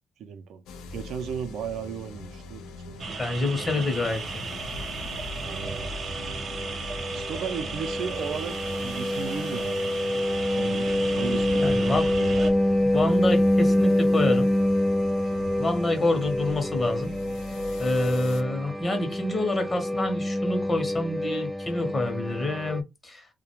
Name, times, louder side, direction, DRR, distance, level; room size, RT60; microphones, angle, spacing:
voice 1, 0.2-0.6 0.9-3.8 5.4-6.0 7.1-8.6 8.8-10.2 10.6-12.4, right 7 dB, 75° right, 0.4 m, -36 dB
sound 1, 0.7-18.4, left 2 dB, 85° left, 0.4 m, -41 dB
sound 2, 3.0-12.5, right 4 dB, 50° right, 0.8 m, -36 dB
voice 2, 3.2-4.2 11.6-12.1 12.8-14.5 15.6-17.1 17.8-23.3, left 2 dB, 30° left, 0.8 m, -27 dB
sound 3, 5.5-22.8, left 1 dB, ahead, 0.3 m, -26 dB
2.3 x 2.1 x 2.9 m
cardioid pair, 90°, 0 cm